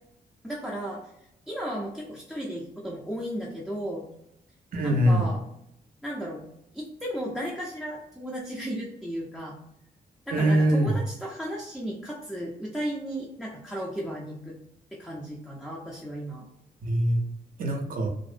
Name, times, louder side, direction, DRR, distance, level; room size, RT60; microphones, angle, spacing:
voice 1, 0.4-1.1 1.5-4.0 4.8-5.5 6.0-6.5 6.7-9.6 10.3-14.5 14.9-16.5, equal, ahead, -3 dB, 0.4 m, -35 dB
voice 2, 4.7-5.2 10.3-10.9 16.8-17.2 17.6-18.1, right 1 dB, 60° right, 3 dB, 0.6 m, -22 dB
2.6 x 2.0 x 2.4 m, 0.79 s
cardioid pair, 115°, 16 cm